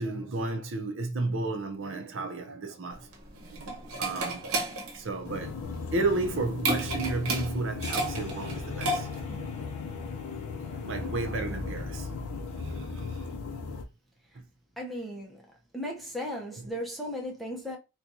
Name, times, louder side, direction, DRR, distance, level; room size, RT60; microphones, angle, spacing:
voice 1, 0.0-4.5 4.9-5.6 5.9-9.5 10.7-12.3 12.6-13.3 14.3-14.4 16.5-16.8, right 2 dB, 60° right, 0.6 m, -33 dB
sound 1, 2.9-9.4, right 2 dB, 75° right, 1.0 m, -33 dB
sound 2, 5.2-13.8, left 4 dB, 85° left, 0.6 m, -37 dB
sound 3, 7.8-13.4, left 4 dB, 30° left, 0.7 m, -50 dB
voice 2, 14.8-15.4 15.7-17.8, equal, ahead, 0.6 m, -36 dB
4.3 x 2.3 x 2.6 m
head